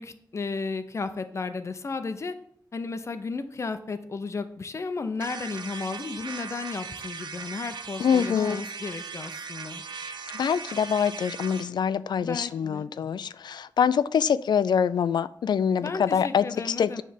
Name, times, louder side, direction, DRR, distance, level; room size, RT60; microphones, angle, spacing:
voice 1, 0.0-2.3 2.7-9.8 12.2-13.0 15.8-17.0, left 4 dB, 40° left, 10 dB, 0.6 m, -34 dB
sound 1, 5.2-11.7, right 5 dB, 80° right, 0.5 m, -38 dB
voice 2, 8.0-8.6 10.3-17.0, left 7 dB, 80° left, 16 dB, 0.3 m, -25 dB
9.4 x 3.3 x 5.8 m, 0.65 s
wide cardioid pair, 125°, 7 cm